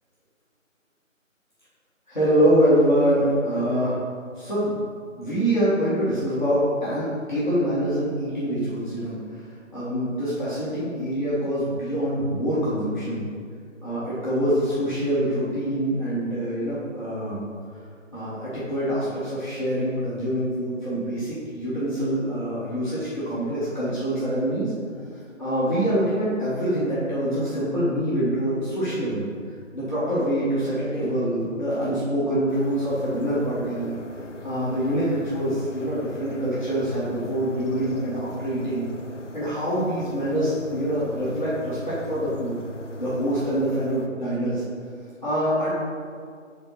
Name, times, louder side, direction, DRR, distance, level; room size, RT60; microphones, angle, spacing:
voice 1, 2.1-4.0 4.4-4.8 5.2-9.4 9.7-13.2 13.8-17.5 18.1-24.7 25.4-29.3 29.7-33.9 34.4-38.9 39.3-42.6 43.0-44.6 45.2-45.7, equal, 35° left, -12 dB, 1.6 m, -25 dB
sound 1, 32.5-44.1, left 1 dB, 65° left, 0.7 m, -40 dB
5.7 x 3.9 x 5.7 m, 2.1 s
figure-of-eight pair, 165°, 40 cm